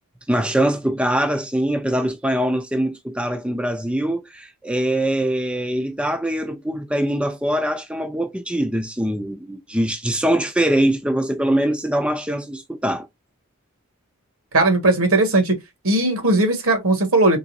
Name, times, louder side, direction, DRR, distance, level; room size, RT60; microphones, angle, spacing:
voice 1, 0.3-13.1, right 1 dB, 5° right, 0.4 m, -23 dB
voice 2, 14.5-15.6 15.8-17.4, right 2 dB, 70° right, 1.5 m, -18 dB
3.9 x 3.7 x 2.6 m
head